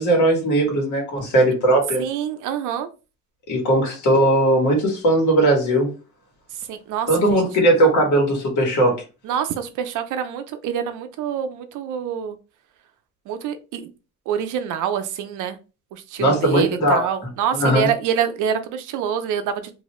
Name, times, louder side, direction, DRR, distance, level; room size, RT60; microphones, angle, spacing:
voice 1, 0.0-2.0 3.5-5.9 7.1-9.0 16.2-17.0 17.5-17.9, right 1 dB, 75° left, 1.5 m, -18 dB
voice 2, 2.0-2.9 6.7-7.5 9.2-12.4 13.3-13.9 14.3-15.6 15.9-19.7, right 8 dB, 90° right, 0.5 m, -26 dB
2.7 x 2.4 x 3.0 m
cardioid pair, 90°, 30 cm